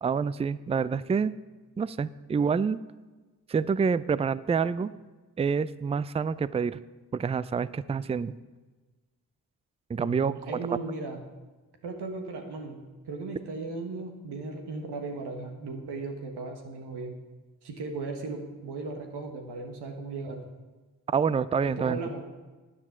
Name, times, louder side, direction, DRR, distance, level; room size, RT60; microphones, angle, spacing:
voice 1, 0.0-1.3 1.8-2.8 3.5-4.9 5.4-6.8 7.1-8.3 9.9-10.7 21.1-22.0, right 6 dB, 15° right, 18 dB, 0.4 m, -27 dB
voice 2, 10.0-11.2 11.8-17.1 17.6-20.4 21.6-22.2, right 3 dB, 70° right, 3 dB, 1.5 m, -37 dB
9.9 x 9.7 x 5.9 m, 1.3 s
hypercardioid pair, 40°, 41 cm